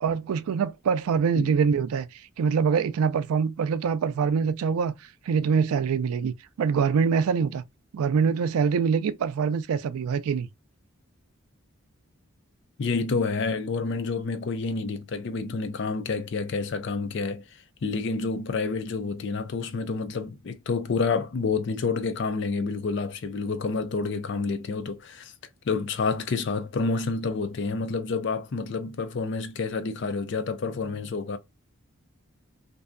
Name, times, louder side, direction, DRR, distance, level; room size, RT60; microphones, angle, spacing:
voice 1, 0.0-4.9 5.3-7.6 7.9-10.5, right 6 dB, 85° right, 0.3 m, -24 dB
voice 2, 12.8-25.3 25.6-31.4, left 4 dB, 55° left, 0.4 m, -29 dB
2.6 x 2.2 x 2.4 m
head